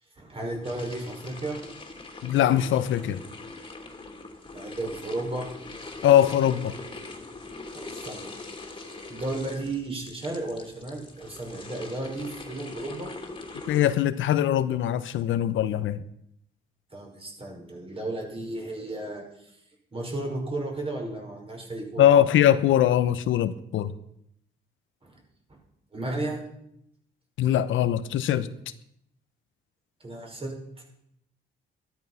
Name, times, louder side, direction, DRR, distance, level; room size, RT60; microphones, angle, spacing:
voice 1, 0.2-1.8 4.5-5.5 7.7-8.3 9.1-13.1 16.9-19.6 19.9-22.4 25.0-25.2 25.9-26.5 30.0-30.5, right 2 dB, 30° right, 1 dB, 5.6 m, -34 dB
sound 1, 0.6-13.9, left 3 dB, 25° left, 2.8 m, -42 dB
voice 2, 2.2-3.2 6.0-6.7 13.7-16.0 22.0-23.9 27.4-28.5, left 11 dB, 80° left, 13 dB, 0.9 m, -22 dB
13.5 x 12.5 x 5.7 m, 0.75 s
cardioid pair, 90°, 20 cm